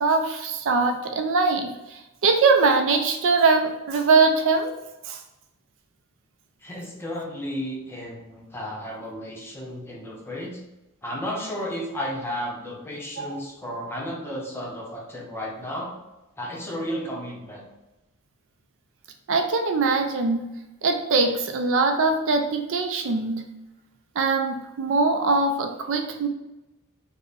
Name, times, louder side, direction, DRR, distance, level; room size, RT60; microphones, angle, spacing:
voice 1, 0.0-4.7 5.1-5.2 13.2-13.4 19.3-20.5 20.8-23.4 24.2-26.3, right 4 dB, 60° right, 5 dB, 0.4 m, -22 dB
voice 2, 6.6-10.6 11.0-15.9 16.4-17.6, equal, 10° left, -2 dB, 0.7 m, -33 dB
4.1 x 2.1 x 3.4 m, 1.0 s
head